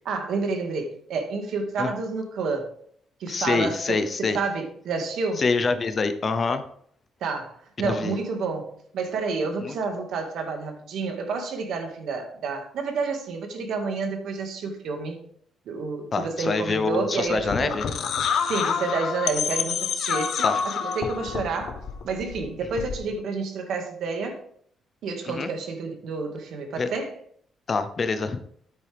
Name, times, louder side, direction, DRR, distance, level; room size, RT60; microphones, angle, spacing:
voice 1, 0.1-2.7 3.2-5.4 7.2-15.2 15.7-17.8 18.4-24.4 25.0-27.1, right 4 dB, 70° right, 4 dB, 1.9 m, -30 dB
voice 2, 3.3-4.4 5.4-6.6 7.8-8.1 9.6-9.8 16.1-17.8 20.4-20.6 25.3-25.5 26.8-26.9 27.7-28.4, left 4 dB, 30° left, 9 dB, 0.7 m, -25 dB
sound 1, 17.3-23.1, left 7 dB, 60° left, 1.0 m, -28 dB
9.6 x 8.7 x 3.5 m, 0.63 s
cardioid pair, 145°, 0 cm